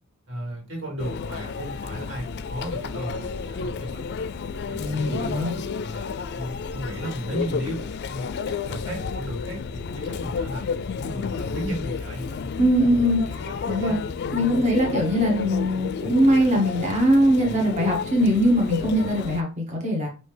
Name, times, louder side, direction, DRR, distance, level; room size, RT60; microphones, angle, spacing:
voice 1, 0.3-4.1 4.5-8.3 8.6-12.5 13.0-14.0 14.3-14.4, equal, 65° right, 0 dB, 2.0 m, -35 dB
Conversation / Chatter / Crowd, 1.0-19.4, left 5 dB, 55° left, 0.4 m, -31 dB
voice 2, 4.8-5.5 12.6-14.0 14.3-20.1, equal, 35° right, 0 dB, 1.2 m, -21 dB
5.3 x 2.8 x 3.3 m, 0.33 s
head